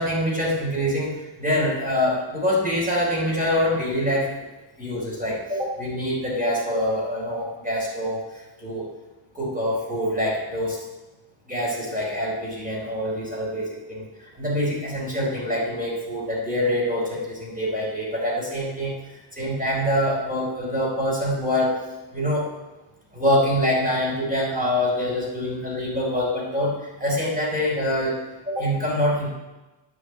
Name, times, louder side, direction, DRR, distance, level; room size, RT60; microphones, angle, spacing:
voice 1, 0.0-4.5 4.8-8.2 8.6-8.9 9.3-10.8 11.5-14.0 14.4-18.9 19.4-21.8 22.1-22.5 23.1-28.2 28.5-29.3, equal, 15° right, -4 dB, 4.4 m, -25 dB
9.6 x 8.3 x 8.3 m, 1.1 s
wide cardioid pair, 150°, 48 cm